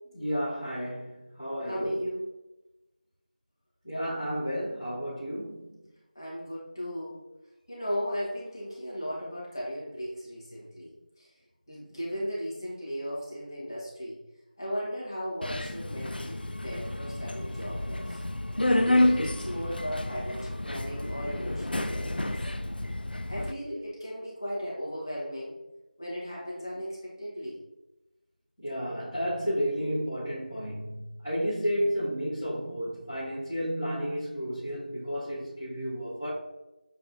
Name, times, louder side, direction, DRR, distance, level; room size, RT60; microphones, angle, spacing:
voice 1, 0.1-2.0 3.8-5.6 28.6-36.3, equal, 5° left, -20 dB, 0.6 m, -32 dB
voice 2, 1.6-2.3 6.1-7.2 7.7-11.3 11.7-14.2 14.6-18.2 18.8-22.3 23.3-25.5 26.0-27.6, equal, 25° left, -6 dB, 1.2 m, -36 dB
Subway metro underground, 15.4-23.5, left 1 dB, 80° left, 0.3 m, -29 dB
6.7 x 2.3 x 2.7 m, 1.0 s
figure-of-eight pair, 175°, 5 cm